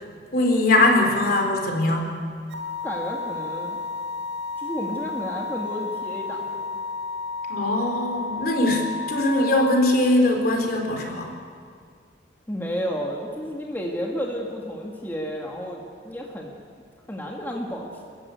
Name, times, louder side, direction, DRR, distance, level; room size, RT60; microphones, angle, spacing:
voice 1, 0.3-2.1 7.5-11.3, left 2 dB, 55° left, 2 dB, 3.9 m, -21 dB
sound 1, 2.5-9.7, left 4 dB, 85° right, 2.1 m, -32 dB
voice 2, 2.8-3.8 4.6-6.7 12.5-16.5 17.1-18.2, equal, 10° left, -2 dB, 2.0 m, -32 dB
28.0 x 14.5 x 8.4 m, 2.1 s
head